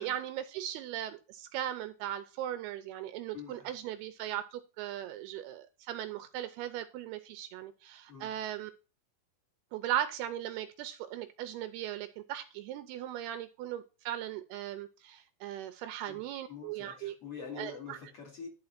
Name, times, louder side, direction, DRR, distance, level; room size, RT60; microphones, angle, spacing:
voice 1, 0.0-8.7 9.7-17.2 17.6-18.0, right 11 dB, 80° right, 2.5 m, -38 dB
voice 2, 3.3-3.7 8.1-8.4 16.1-18.5, left 6 dB, 40° left, 2.8 m, -46 dB
11.5 x 4.6 x 5.8 m
omnidirectional pair, 4.9 m